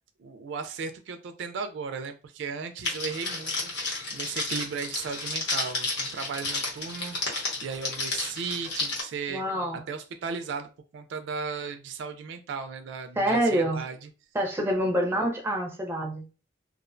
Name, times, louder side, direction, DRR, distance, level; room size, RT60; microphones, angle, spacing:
voice 1, 0.2-3.7 4.1-9.5 9.7-14.1, right 5 dB, 70° right, 7 dB, 0.3 m, -36 dB
Crackle, 2.8-9.0, left 3 dB, 65° left, 0.9 m, -32 dB
voice 2, 9.3-9.8 13.2-13.8 14.3-16.2, right 1 dB, 15° right, 1 dB, 0.5 m, -26 dB
2.5 x 2.0 x 2.4 m, 0.34 s
head